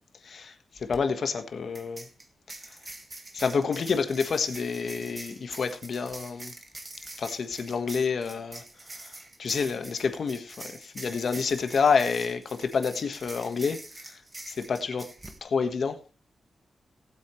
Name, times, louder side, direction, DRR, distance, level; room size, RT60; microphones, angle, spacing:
voice 1, 0.2-2.1 2.7-2.8 3.3-6.5 7.2-14.2 14.5-15.1 15.4-16.0, left 5 dB, 55° left, 1.4 m, -29 dB
sound 1, 0.8-1.0 1.7-15.4, right 2 dB, 20° right, 1.4 m, -44 dB
18.5 x 8.5 x 3.2 m
wide cardioid pair, 170°, 0 cm